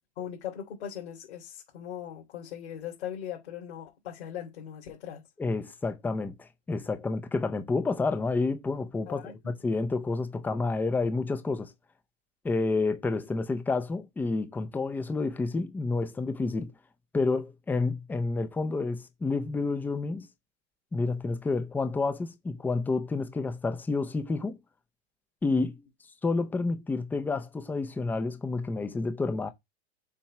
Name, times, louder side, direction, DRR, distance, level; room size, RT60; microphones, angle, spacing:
voice 1, 0.2-5.2 9.1-9.5, left 10 dB, 70° left, 3.4 m, -39 dB
voice 2, 5.4-11.7 12.4-16.7 17.1-20.3 20.9-24.6 25.4-25.8 26.2-29.5, left 3 dB, 5° left, 0.5 m, -29 dB
7.4 x 3.1 x 5.6 m
supercardioid pair, 140°, 33 cm